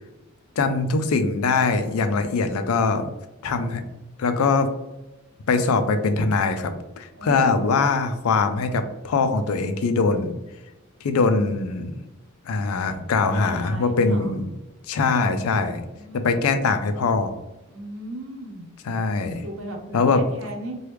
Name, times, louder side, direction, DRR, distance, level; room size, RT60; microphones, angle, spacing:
voice 1, 0.6-3.1 3.4-3.8 4.2-4.7 5.5-6.7 7.0-10.3 11.0-11.9 12.5-14.4 14.9-15.8 16.1-17.3 18.9-19.4 19.9-20.2, left 4 dB, 85° left, 9 dB, 0.4 m, -22 dB
voice 2, 7.1-7.7 13.2-14.4 15.9-16.6 17.7-18.7 19.4-20.8, right 1 dB, 70° right, 1 dB, 0.8 m, -37 dB
3.1 x 2.3 x 3.3 m, 1.0 s
head